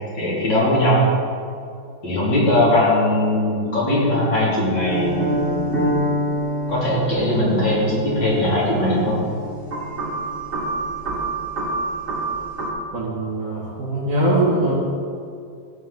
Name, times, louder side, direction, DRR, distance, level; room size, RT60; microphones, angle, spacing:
voice 1, 0.2-1.0 2.0-6.1 6.7-9.2, left 1 dB, 85° left, -7 dB, 3.8 m, -20 dB
sound 1, 4.9-12.7, right 1 dB, 30° right, 2.0 m, -26 dB
voice 2, 12.9-14.7, right 1 dB, 45° right, -10 dB, 2.5 m, -21 dB
15.0 x 8.0 x 4.0 m, 2.3 s
omnidirectional pair, 2.0 m